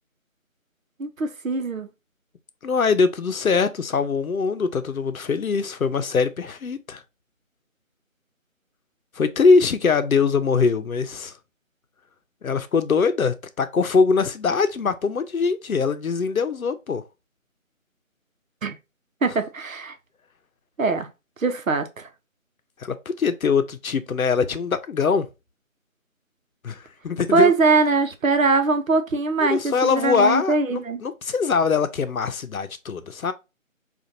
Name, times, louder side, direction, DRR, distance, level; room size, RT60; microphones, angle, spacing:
voice 1, 1.0-1.9 18.6-18.8 19.2-19.9 20.8-21.1 21.4-22.1 27.3-31.0, right 3 dB, 70° right, 0.8 m, -22 dB
voice 2, 2.6-7.0 9.2-11.3 12.4-17.0 22.8-25.3 26.6-27.5 29.5-33.3, left 5 dB, 80° left, 0.7 m, -22 dB
5.1 x 2.5 x 2.8 m
figure-of-eight pair, 175°, 41 cm